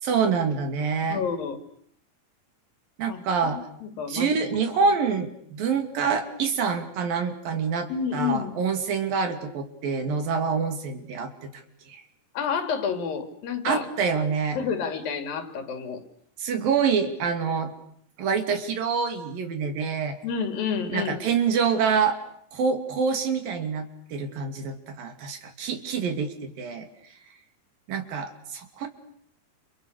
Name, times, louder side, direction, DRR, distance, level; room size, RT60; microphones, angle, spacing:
voice 1, 0.0-1.2 3.0-3.6 4.1-11.6 11.9-12.0 13.6-14.6 16.4-17.7 18.2-20.2 20.9-22.2 22.5-26.9 27.9-28.9, right 5 dB, 85° right, 7 dB, 4.5 m, -26 dB
voice 2, 1.1-1.6 3.1-3.2 3.5-4.3 7.9-8.6 12.3-13.9 14.6-16.0 20.2-21.2, left 6 dB, 90° left, 7 dB, 4.4 m, -29 dB
29.5 x 29.0 x 6.6 m, 0.66 s
omnidirectional pair, 3.9 m